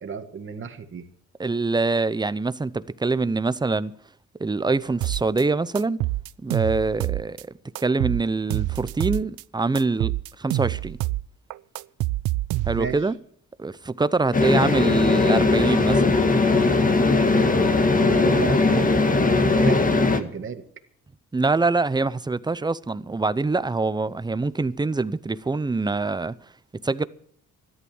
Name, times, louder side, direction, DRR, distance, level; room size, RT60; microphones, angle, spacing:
voice 1, 0.0-1.0 12.7-13.0 14.5-14.6 18.0-20.6, right 6 dB, 40° right, 1.9 m, -34 dB
voice 2, 1.4-3.9 4.4-6.0 6.4-7.5 7.8-11.0 12.7-13.2 13.6-16.2 21.3-26.3 26.8-27.0, right 3 dB, 15° right, 0.7 m, -24 dB
sound 1, 5.0-5.4 5.8-7.4 7.8-9.4 9.8-11.3 11.5-13.0, right 18 dB, 80° right, 0.5 m, -27 dB
sound 2, 14.3-20.2, left 3 dB, 25° left, 1.8 m, -19 dB
13.5 x 11.5 x 7.3 m
cardioid pair, 90°, 30 cm